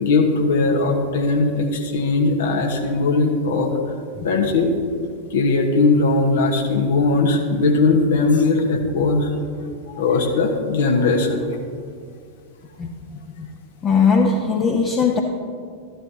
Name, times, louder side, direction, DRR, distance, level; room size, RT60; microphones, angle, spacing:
voice 1, 0.0-3.7 4.2-4.7 5.3-9.4 9.9-11.4, left 3 dB, 60° left, 2 dB, 1.3 m, -19 dB
voice 2, 13.8-15.2, left 5 dB, 25° left, 1 dB, 0.8 m, -18 dB
13.0 x 11.5 x 2.8 m, 2.2 s
figure-of-eight pair, 90°, 0 cm